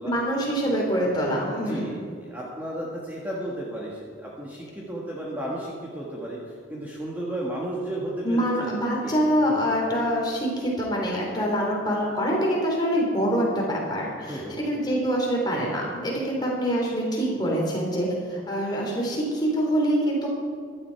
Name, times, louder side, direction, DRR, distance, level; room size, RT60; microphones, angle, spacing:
voice 1, 0.0-1.9 8.2-20.3, equal, 20° left, -2 dB, 3.2 m, -25 dB
voice 2, 0.6-8.7 9.0-9.7 14.3-14.7, right 1 dB, 10° right, -5 dB, 1.6 m, -34 dB
16.0 x 11.5 x 4.6 m, 2.2 s
head